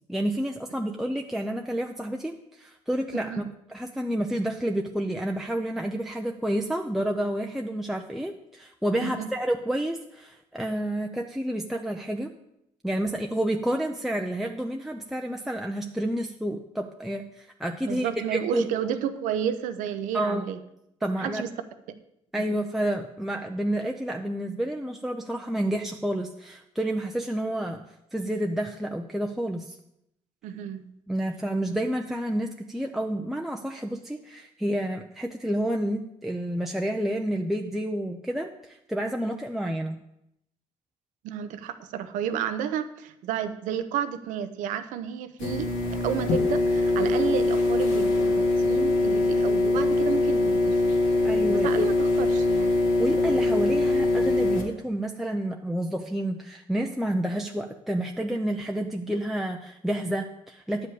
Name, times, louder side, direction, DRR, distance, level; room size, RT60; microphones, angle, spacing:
voice 1, 0.1-3.4 3.7-12.3 12.8-18.7 20.1-20.4 21.0-21.5 22.3-27.8 28.1-29.8 31.1-40.0 51.2-51.9 53.0-60.9, right 1 dB, ahead, 2 dB, 0.7 m, -29 dB
voice 2, 9.0-9.3 17.9-20.6 21.2-21.5 22.3-22.5 30.4-30.9 41.2-45.7 46.0-50.9 51.6-52.8, right 9 dB, 90° right, 10 dB, 0.8 m, -31 dB
sound 1, 45.4-54.6, left 2 dB, 80° left, 2.1 m, -23 dB
10.5 x 5.0 x 8.1 m, 0.81 s
cardioid pair, 85°, 13 cm